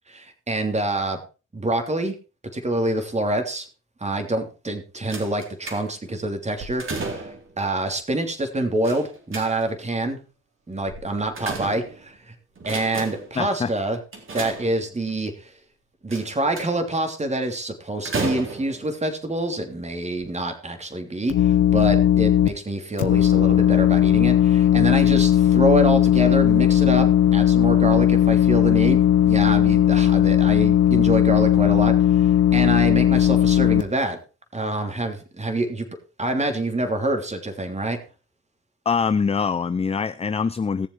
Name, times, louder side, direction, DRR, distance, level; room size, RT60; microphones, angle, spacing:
voice 1, 0.1-1.2 1.5-2.1 2.5-3.7 4.0-10.2 10.7-12.3 12.6-14.0 14.3-15.5 16.0-34.2 34.5-35.8 36.2-38.0, right 1 dB, 20° right, 6 dB, 3.2 m, -26 dB
sound 1, 5.1-6.1 6.6-7.5 8.8-9.9 10.9-12.2 12.6-13.4 14.1-15.1 16.1-16.9 18.0-18.9 19.7-19.8 20.2-20.3, right 3 dB, 40° right, 3.8 m, -33 dB
voice 2, 13.4-13.7 38.9-40.9, left 5 dB, 20° left, 13 dB, 0.6 m, -23 dB
sound 2, 21.3-22.5 23.0-33.8, left 11 dB, 70° left, 1.4 m, -17 dB
18.0 x 7.3 x 4.6 m, 0.35 s
cardioid pair, 90°, 30 cm